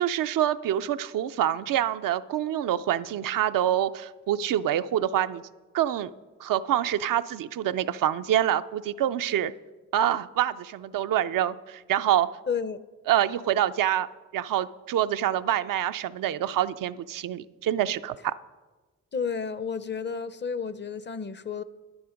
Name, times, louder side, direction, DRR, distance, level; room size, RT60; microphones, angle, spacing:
voice 1, 0.0-5.4 5.7-6.1 6.4-9.5 9.9-12.3 13.1-14.1 14.3-18.3, right 11 dB, 75° right, 0.5 m, -26 dB
voice 2, 12.5-12.8 19.1-21.6, left 6 dB, 35° left, 0.6 m, -31 dB
10.0 x 9.6 x 5.1 m
cardioid pair, 60°, 34 cm